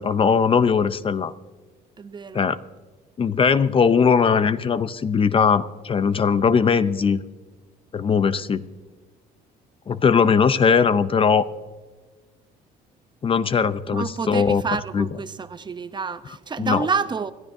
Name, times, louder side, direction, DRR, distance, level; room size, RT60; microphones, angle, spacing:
voice 1, 0.0-1.3 2.3-2.6 3.2-7.2 7.9-8.6 9.9-11.5 13.2-14.6 14.9-15.1 16.6-16.9, left 6 dB, 30° left, 0.5 m, -19 dB
voice 2, 2.0-2.4 13.9-17.3, right 5 dB, 25° right, 0.7 m, -28 dB
27.5 x 12.5 x 2.7 m
cardioid pair, 110°, 17 cm